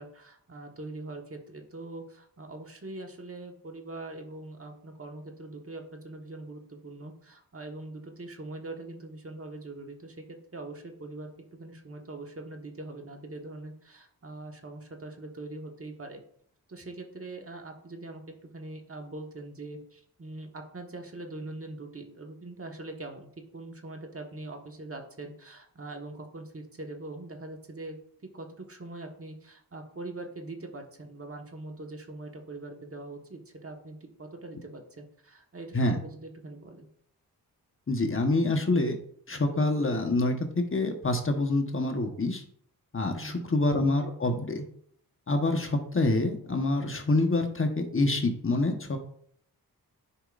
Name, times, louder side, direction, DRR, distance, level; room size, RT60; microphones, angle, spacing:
voice 1, 0.0-10.2 10.5-11.3 11.6-16.2 16.7-18.2 18.5-28.0 28.3-36.9 43.1-43.5, right 2 dB, 35° right, 3 dB, 1.4 m, -42 dB
voice 2, 37.9-39.0 39.3-42.4 42.9-44.6 45.3-49.0, left 2 dB, 35° left, 3 dB, 1.1 m, -26 dB
9.9 x 5.2 x 2.5 m, 0.65 s
cardioid pair, 55°, 37 cm